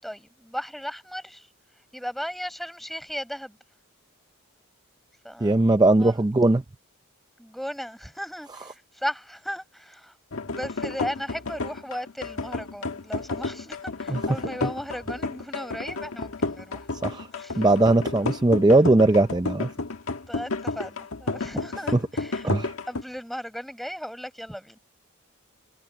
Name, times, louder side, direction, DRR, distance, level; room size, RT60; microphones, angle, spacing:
voice 1, 0.0-3.6 5.2-5.7 6.0-6.2 7.4-10.2 10.4-16.9 17.3-17.7 20.3-22.5 22.8-24.8, equal, ahead, 6.3 m, -36 dB
voice 2, 5.4-6.6 14.1-14.2 17.0-17.3 17.6-19.7 22.4-22.7, right 2 dB, 20° right, 0.4 m, -19 dB
sound 1, 10.3-23.0, left 3 dB, 75° left, 1.5 m, -31 dB
head